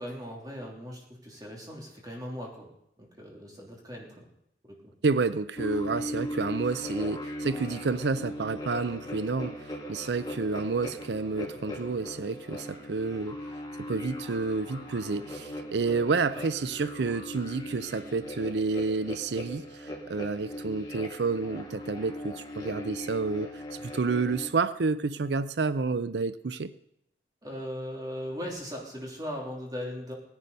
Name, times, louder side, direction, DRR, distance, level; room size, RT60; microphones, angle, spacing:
voice 1, 0.0-2.7 3.0-4.3 27.4-30.1, equal, 20° right, 3.1 m, -38 dB
voice 2, 5.0-9.6 9.9-13.4 13.8-26.7, right 4 dB, 75° right, 0.5 m, -29 dB
sound 1, 5.5-24.5, equal, 20° left, 2.5 m, -39 dB
18.0 x 10.5 x 5.4 m
head